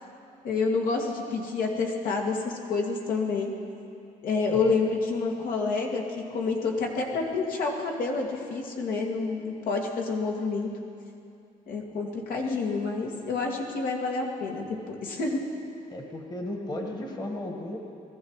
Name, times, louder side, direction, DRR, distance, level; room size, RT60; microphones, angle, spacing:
voice 1, 0.4-3.5 4.2-6.0 6.3-10.7 11.7-15.4, left 4 dB, 75° left, 0 dB, 2.1 m, -28 dB
voice 2, 15.9-17.8, left 1 dB, 30° left, 2 dB, 1.5 m, -35 dB
20.0 x 14.5 x 4.8 m, 2.6 s
cardioid pair, 125°, 14 cm